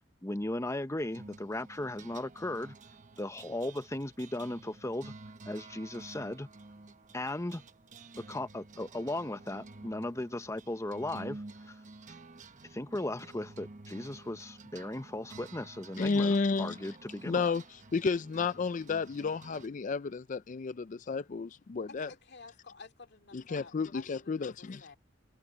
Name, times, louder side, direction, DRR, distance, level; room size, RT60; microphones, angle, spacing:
voice 1, 0.2-2.7 3.2-5.1 5.5-6.5 7.1-7.6 8.2-11.8 12.7-17.5, left 1 dB, 15° left, 0.8 m, -37 dB
sound 1, 1.1-19.7, right 3 dB, 40° right, 1.1 m, -51 dB
voice 2, 16.0-16.8 17.3-22.1 23.3-24.9, left 4 dB, 40° left, 0.4 m, -32 dB
voice 3, 21.9-25.0, left 4 dB, 60° left, 2.6 m, -52 dB
head